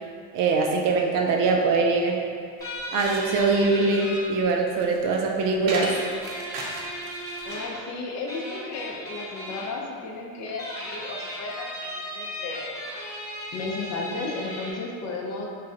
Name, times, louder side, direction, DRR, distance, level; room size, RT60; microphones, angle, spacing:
voice 1, 0.3-2.2 2.9-6.0, right 3 dB, 50° right, 1 dB, 0.4 m, -22 dB
sound 1, 2.6-4.2 5.8-7.8 8.3-9.7 10.5-14.7, equal, 10° left, 0.8 m, -36 dB
sound 2, 2.6-7.8, right 2 dB, 85° right, 0.7 m, -37 dB
voice 2, 7.4-12.7 13.5-15.5, left 3 dB, 40° left, -1 dB, 0.5 m, -34 dB
3.1 x 2.4 x 3.7 m, 2.2 s
supercardioid pair, 120°, 43 cm